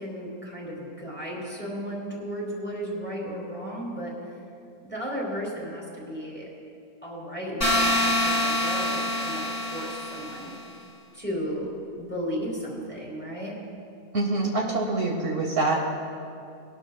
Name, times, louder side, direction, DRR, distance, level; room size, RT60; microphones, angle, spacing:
voice 1, 0.0-4.1 4.8-6.4 7.0-10.5 11.1-13.6, equal, 5° left, -5 dB, 3.2 m, -34 dB
sound 1, 7.6-10.5, left 1 dB, 40° left, 3.4 m, -25 dB
voice 2, 14.1-15.8, right 2 dB, 60° right, -1 dB, 1.4 m, -25 dB
20.5 x 12.0 x 2.2 m, 2.5 s
omnidirectional pair, 1.6 m